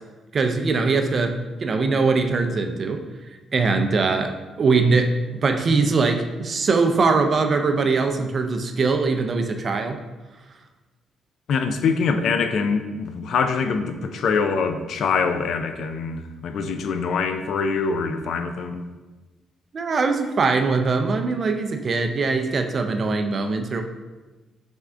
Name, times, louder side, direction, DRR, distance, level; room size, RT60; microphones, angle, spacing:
voice 1, 0.3-3.0 3.5-10.0 19.7-23.8, right 4 dB, 45° right, 6 dB, 0.4 m, -22 dB
voice 2, 11.5-18.8, left 5 dB, 70° left, 8 dB, 0.4 m, -24 dB
3.6 x 3.5 x 3.3 m, 1.2 s
cardioid pair, 90°, 0 cm